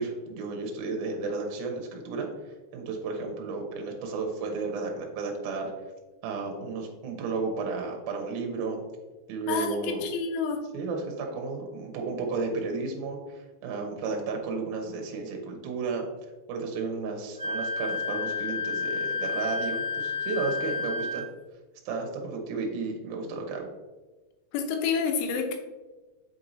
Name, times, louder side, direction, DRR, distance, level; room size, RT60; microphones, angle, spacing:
voice 1, 0.0-2.3 2.7-5.7 6.2-8.8 9.3-10.0 10.7-16.0 16.5-21.2 21.9-23.7, right 4 dB, 75° right, 2 dB, 2.3 m, -33 dB
voice 2, 9.5-10.6 24.5-25.6, left 6 dB, 85° left, 4 dB, 3.3 m, -28 dB
Wind instrument woodwind instrument, 17.4-21.2, left 4 dB, 55° right, 2.4 m, -31 dB
7.9 x 4.6 x 2.7 m, 1.2 s
omnidirectional pair, 5.5 m